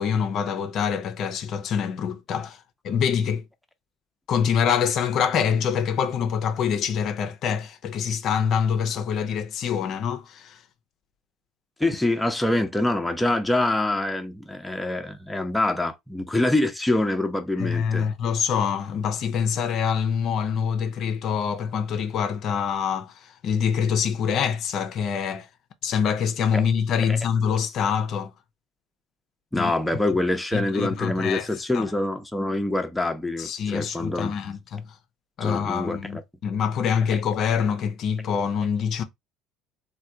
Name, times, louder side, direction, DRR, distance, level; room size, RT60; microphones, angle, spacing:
voice 1, 0.0-3.4 4.3-10.6 17.6-25.5 25.8-28.3 29.5-29.7 30.5-31.5 31.7-31.9 33.4-34.8 35.4-39.0, left 7 dB, 55° left, 0.5 m, -25 dB
voice 2, 11.8-18.1 27.1-27.2 29.5-34.4 35.4-36.2, left 2 dB, 5° left, 0.6 m, -25 dB
3.1 x 2.2 x 2.7 m
hypercardioid pair, 65°, 0 cm